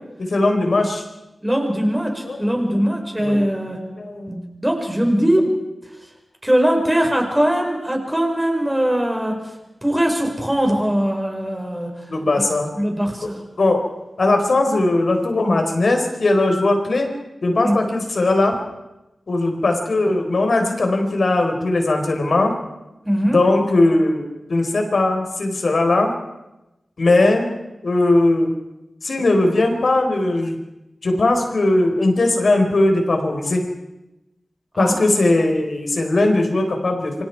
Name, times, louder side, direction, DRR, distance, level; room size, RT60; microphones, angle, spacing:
voice 1, 0.2-1.0 2.3-2.8 3.2-3.7 4.0-4.5 12.1-12.7 13.2-13.3 13.6-13.9 14.2-17.1 17.4-18.6 19.3-22.6 23.3-26.1 27.0-27.5 27.8-28.5 29.0-30.6 31.0-33.6 34.8-37.2, left 2 dB, 70° left, 3 dB, 4.4 m, -19 dB
voice 2, 1.4-3.8 4.3-5.5 6.4-9.5 9.8-11.9 12.4-12.5 12.7-13.4 17.6-17.8 23.0-23.4 34.7-35.0, equal, 10° right, 2 dB, 5.1 m, -21 dB
27.5 x 25.0 x 4.8 m, 0.97 s
wide cardioid pair, 105°, 0 cm